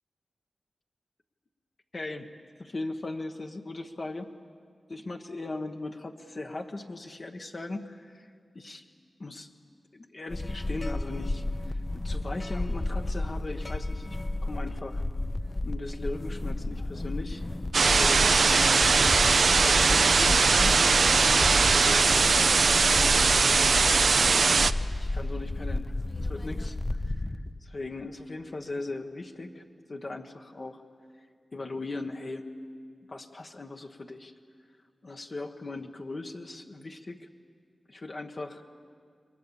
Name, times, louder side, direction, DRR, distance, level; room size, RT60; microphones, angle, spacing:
voice 1, 1.9-2.3 2.6-4.3 4.9-8.8 9.2-9.5 9.9-15.0 15.6-17.5 17.8-18.8 19.3-20.8 21.1-24.0 25.0-26.8 27.0-29.6 29.9-30.8 31.5-32.5 33.1-34.3 35.0-37.3 37.9-38.6, left 2 dB, 50° left, 3 dB, 1.2 m, -39 dB
sound 1, 10.3-27.6, left 2 dB, 30° left, 0.7 m, -32 dB
sound 2, 17.7-24.7, right 4 dB, 70° right, 0.5 m, -21 dB
27.5 x 22.0 x 7.0 m, 2.1 s
cardioid pair, 65°, 0 cm